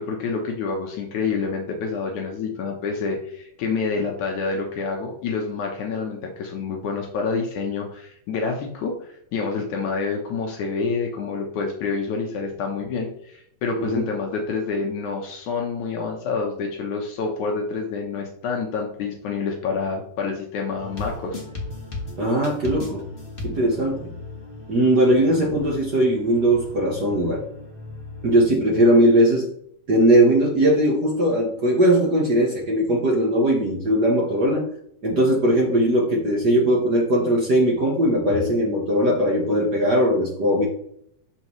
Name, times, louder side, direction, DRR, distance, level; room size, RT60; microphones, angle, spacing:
voice 1, 0.0-21.4, left 4 dB, 70° left, 1 dB, 2.3 m, -27 dB
sound 1, 20.8-28.5, left 3 dB, 30° left, 1.0 m, -37 dB
voice 2, 22.2-23.1 23.4-24.1 24.7-27.4 28.2-29.5 29.9-34.7 35.0-40.7, right 1 dB, 55° right, -2 dB, 1.1 m, -19 dB
12.0 x 4.4 x 3.1 m, 0.70 s
omnidirectional pair, 3.7 m